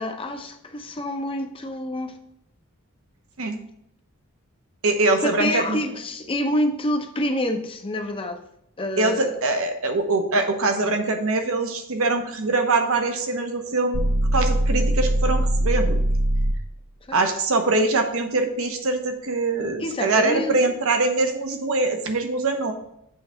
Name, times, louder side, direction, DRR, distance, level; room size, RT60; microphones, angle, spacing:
voice 1, 0.0-2.2 5.2-8.4 8.8-9.4 17.1-17.2 19.8-20.6, left 1 dB, 25° left, 6 dB, 0.7 m, -27 dB
voice 2, 4.8-5.8 9.0-14.0 14.3-16.0 17.1-22.7, right 3 dB, 65° right, 5 dB, 1.0 m, -23 dB
sound 1, 13.9-16.7, right 1 dB, 45° right, 0.6 m, -21 dB
7.7 x 3.3 x 5.6 m, 0.75 s
head